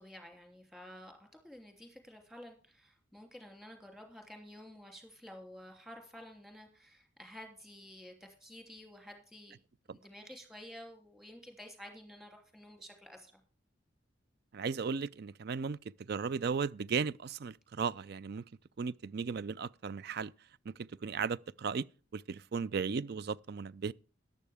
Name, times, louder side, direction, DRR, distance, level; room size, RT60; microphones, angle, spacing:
voice 1, 0.0-9.6 9.9-13.4, equal, ahead, 3.0 m, -51 dB
voice 2, 14.5-15.8 16.1-18.4 18.8-20.3 20.7-21.9 22.1-23.9, right 5 dB, 55° right, 0.4 m, -36 dB
13.5 x 11.0 x 3.5 m
head